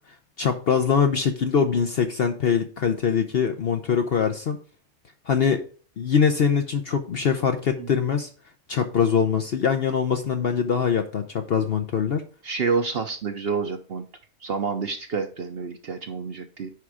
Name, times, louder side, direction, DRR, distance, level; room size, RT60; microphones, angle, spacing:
voice 1, 0.4-4.6 5.3-5.6 6.0-8.3 8.7-12.2, left 7 dB, 55° left, 7 dB, 0.7 m, -23 dB
voice 2, 12.4-14.1 14.4-16.7, right 5 dB, 50° right, 7 dB, 0.8 m, -28 dB
9.5 x 3.7 x 4.8 m, 0.39 s
omnidirectional pair, 1.5 m